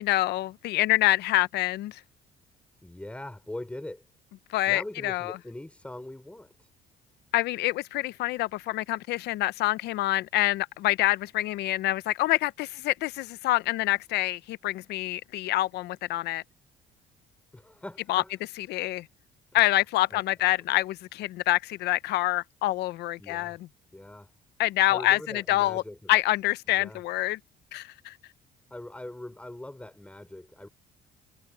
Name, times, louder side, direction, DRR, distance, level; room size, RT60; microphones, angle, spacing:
voice 1, 0.0-2.0 4.5-5.4 7.3-16.4 18.1-18.2 18.7-19.1 19.5-23.7 24.6-25.8 26.1-27.4 27.7-28.2, left 16 dB, 80° left, 0.7 m, -26 dB
voice 2, 2.8-4.0 4.7-6.7 17.5-18.3 20.1-20.5 23.2-23.6 23.9-24.3 24.9-26.1 26.7-27.0 28.7-30.7, left 1 dB, 5° left, 5.1 m, -41 dB
cardioid pair, 110°, 17 cm